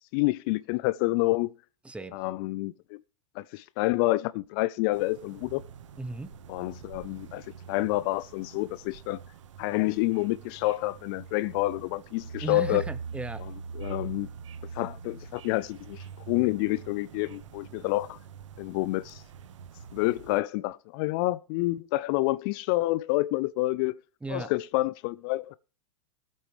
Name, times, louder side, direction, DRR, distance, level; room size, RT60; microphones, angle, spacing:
voice 1, 0.1-1.5 2.1-3.0 3.4-5.6 6.5-9.2 9.6-12.8 13.8-14.3 14.7-18.2 18.6-19.2 19.9-24.0 24.3-25.5, left 19 dB, 45° left, 0.5 m, -28 dB
voice 2, 1.8-2.2 6.0-6.3 12.4-13.5 24.2-24.5, right 2 dB, 5° right, 0.8 m, -36 dB
sound 1, 4.9-20.4, right 6 dB, 70° right, 1.1 m, -43 dB
17.5 x 8.4 x 3.2 m
hypercardioid pair, 110°, 16 cm